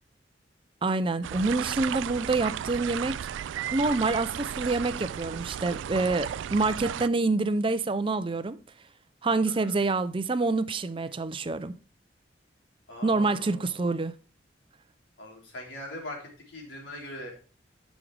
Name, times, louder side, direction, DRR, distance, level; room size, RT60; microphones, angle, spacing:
voice 1, 0.8-3.3 3.7-8.6 9.2-11.7 13.0-14.1, right 3 dB, 30° right, 0.5 m, -27 dB
sound 1, 1.2-7.1, right 9 dB, 90° right, 0.3 m, -34 dB
voice 2, 9.5-9.8 12.9-14.0 15.2-17.4, left 1 dB, 90° left, 3.8 m, -42 dB
11.0 x 6.3 x 3.3 m
head